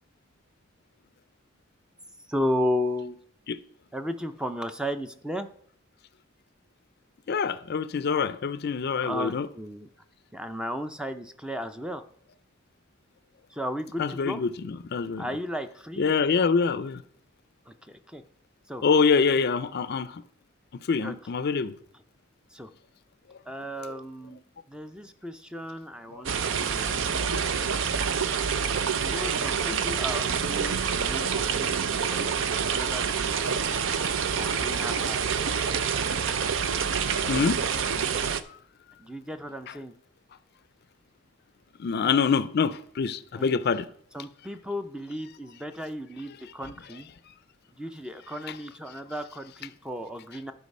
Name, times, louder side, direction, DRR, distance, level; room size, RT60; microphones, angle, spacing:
voice 1, 2.3-3.2 3.9-5.5 9.0-9.9 10.3-12.0 13.5-14.4 15.2-16.2 16.6-16.7 17.7-18.2 18.7-18.8 21.0-21.1 22.5-22.7 23.5-27.2 29.0-33.5 34.4-35.5 39.0-39.9 43.3-43.4 44.1-47.1 47.8-50.5, equal, 5° right, 0.4 m, -34 dB
voice 2, 7.3-9.5 14.0-15.3 16.0-17.0 18.8-20.2 20.9-21.7 26.1-26.6 26.9-27.0 27.4-27.5 29.6-29.8 31.2-31.3 37.2-38.1 41.8-43.9, left 5 dB, 50° left, 0.4 m, -26 dB
sound 1, 26.3-38.4, right 6 dB, 65° right, 0.5 m, -27 dB
11.5 x 4.7 x 5.4 m
head